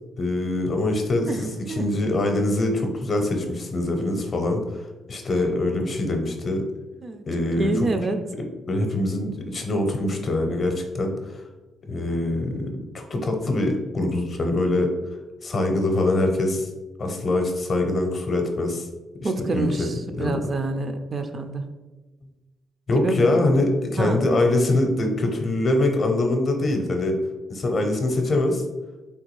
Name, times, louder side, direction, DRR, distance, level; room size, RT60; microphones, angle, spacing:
voice 1, 0.2-6.6 7.3-8.0 8.7-11.4 11.9-14.9 15.4-16.7 17.0-18.9 19.2-19.9 20.2-20.5 22.9-27.2 27.5-28.6, left 2 dB, 45° left, 3 dB, 0.6 m, -24 dB
voice 2, 1.7-2.1 7.0-7.2 7.6-8.2 19.2-21.6 23.0-23.3 24.0-24.2, right 2 dB, 45° right, 7 dB, 0.4 m, -27 dB
3.4 x 2.3 x 3.1 m, 1.1 s
cardioid pair, 80°, 0 cm